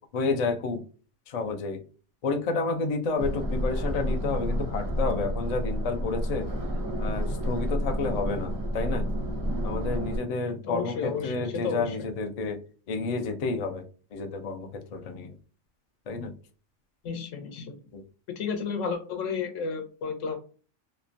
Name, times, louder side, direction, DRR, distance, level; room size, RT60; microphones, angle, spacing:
voice 1, 0.1-0.8 1.3-1.8 2.2-6.5 7.0-9.1 9.6-12.6 12.9-13.8 14.1-15.3 16.1-16.3 17.9-18.0, left 4 dB, 65° left, 5 dB, 0.4 m, -30 dB
sound 1, 3.2-10.2, equal, 30° right, 0.3 m, -30 dB
voice 2, 10.6-12.1 17.0-17.8 18.4-20.4, left 5 dB, 85° left, 6 dB, 1.0 m, -32 dB
3.0 x 2.1 x 2.5 m, 0.38 s
omnidirectional pair, 1.3 m